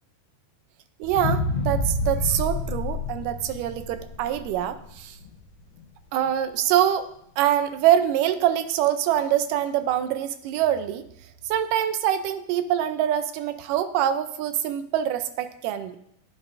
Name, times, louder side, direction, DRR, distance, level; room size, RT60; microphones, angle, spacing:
sound 1, 1.0-5.3 5.8-5.9, left 2 dB, 65° left, 1.9 m, -28 dB
voice 1, 1.0-5.2 6.1-7.1 7.4-11.0 11.5-16.0, right 11 dB, 85° right, 11 dB, 2.2 m, -24 dB
13.0 x 9.3 x 2.5 m, 0.73 s
omnidirectional pair, 3.8 m